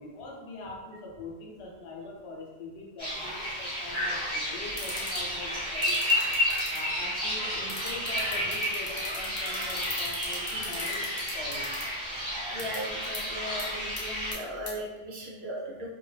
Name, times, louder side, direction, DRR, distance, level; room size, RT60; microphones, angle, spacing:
voice 1, 0.0-6.0 6.7-11.0 11.3-11.7, left 2 dB, 90° left, -1 dB, 0.9 m, -42 dB
sound 1, 3.0-14.3, left 1 dB, 30° right, 1.1 m, -31 dB
sound 2, 4.7-5.2 5.8-6.8 7.7-11.8 12.6-12.8 13.1-13.2 13.6-13.7 14.0-14.3 14.7-14.8, left 3 dB, 35° left, 0.7 m, -38 dB
voice 2, 12.5-15.9, equal, 80° right, -4 dB, 1.0 m, -37 dB
2.6 x 2.2 x 3.1 m, 1.2 s
omnidirectional pair, 1.1 m